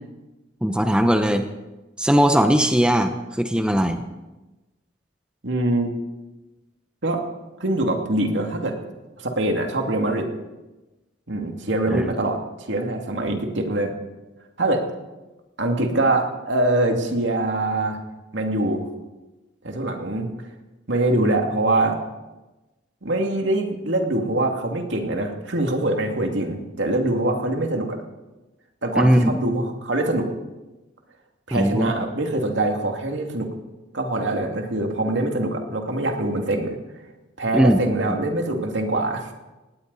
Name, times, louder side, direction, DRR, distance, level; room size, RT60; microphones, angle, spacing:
voice 1, 0.6-1.5 2.0-4.0 11.9-12.0 29.0-29.3 31.5-31.9 37.5-37.8, equal, 5° right, 6 dB, 0.8 m, -19 dB
voice 2, 5.4-5.9 7.0-7.2 7.6-8.8 9.2-10.3 11.3-12.4 12.7-13.9 14.6-14.8 15.6-18.0 18.3-18.9 19.6-20.3 20.9-22.0 23.0-28.0 28.8-30.3 31.5-33.5 33.9-36.8 37.4-39.3, right 2 dB, 70° right, 3 dB, 2.4 m, -23 dB
19.0 x 18.0 x 4.1 m, 1.1 s
head